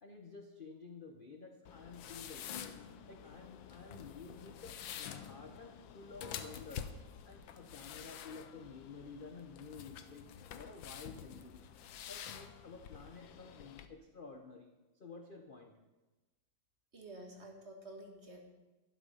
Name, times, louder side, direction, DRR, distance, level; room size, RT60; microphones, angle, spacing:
voice 1, 0.0-2.8 3.1-6.9 7.3-11.7 12.1-14.7 15.0-15.8, left 4 dB, 40° left, 4 dB, 0.8 m, -52 dB
sound 1, 1.7-13.9, left 9 dB, 85° left, 1.6 m, -48 dB
voice 2, 16.9-18.4, right 1 dB, 35° right, 1 dB, 2.3 m, -50 dB
12.0 x 11.5 x 5.6 m, 1.1 s
omnidirectional pair, 2.1 m